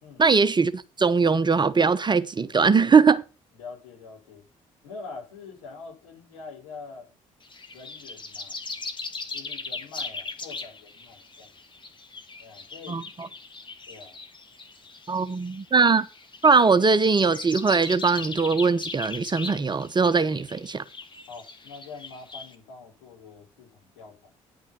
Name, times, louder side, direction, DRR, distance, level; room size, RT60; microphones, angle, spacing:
voice 1, 0.2-3.2 12.9-13.3 15.1-16.1 16.4-20.8, right 4 dB, 25° right, 1.0 m, -21 dB
voice 2, 3.5-4.4 4.8-7.1 7.7-8.6 9.3-11.5 12.4-13.1 13.9-14.2 21.3-24.3, left 4 dB, 70° left, 4.9 m, -44 dB
sound 1, 7.4-22.5, left 3 dB, 30° left, 2.2 m, -39 dB
10.5 x 6.2 x 5.6 m
figure-of-eight pair, 45°, 17 cm